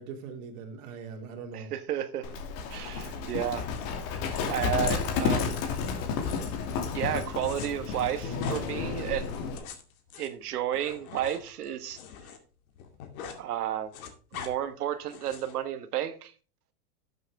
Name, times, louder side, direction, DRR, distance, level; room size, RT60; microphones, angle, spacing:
voice 1, 0.0-1.7 3.0-3.1 4.3-4.5, right 5 dB, 60° right, 3.0 m, -42 dB
voice 2, 1.5-2.3 2.7-3.7 4.5-5.6 6.9-9.4 10.2-12.0 13.4-13.9 14.3-16.3, right 10 dB, 85° right, 1.6 m, -32 dB
Livestock farm animals working animals, 2.2-9.6, left 5 dB, 45° left, 2.5 m, -31 dB
sound 1, 7.4-7.7 8.4-8.7 9.4-12.4 12.7-13.4 13.7-14.5 15.1-15.6, left 8 dB, 65° left, 2.5 m, -43 dB
12.5 x 7.9 x 3.5 m
supercardioid pair, 140°, 45 cm